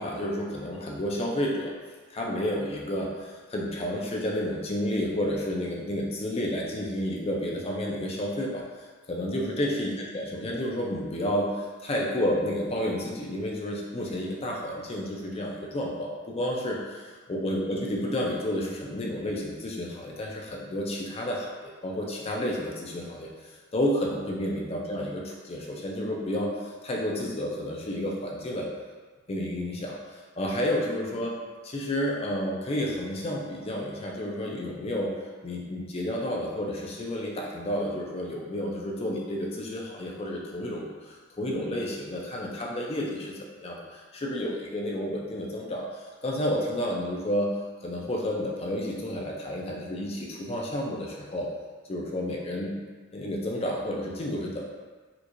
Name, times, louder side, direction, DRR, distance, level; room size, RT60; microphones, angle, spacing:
voice 1, 0.0-1.7 2.1-8.6 9.1-21.5 21.8-28.7 29.3-31.3 31.6-35.1 35.4-45.9 46.2-47.5 47.8-51.5 51.9-52.8 53.1-54.7, left 1 dB, 30° left, -2 dB, 0.5 m, -31 dB
4.4 x 2.5 x 2.5 m, 1.4 s
head